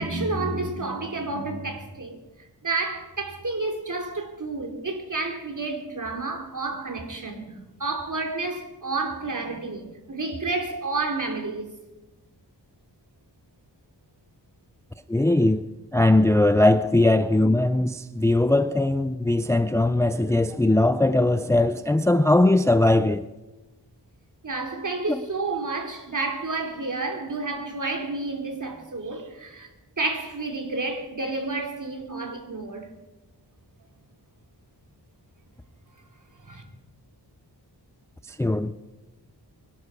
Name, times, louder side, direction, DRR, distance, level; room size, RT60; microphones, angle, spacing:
voice 1, 0.0-2.2 2.6-11.7 24.4-29.7 30.0-32.9 36.4-36.6, right 3 dB, 45° right, 2.8 m, -30 dB
voice 2, 15.1-15.6 15.9-23.2 25.1-25.2 38.4-38.7, left 2 dB, 5° left, 0.4 m, -20 dB
23.5 x 11.5 x 4.8 m
wide cardioid pair, 85°, 42 cm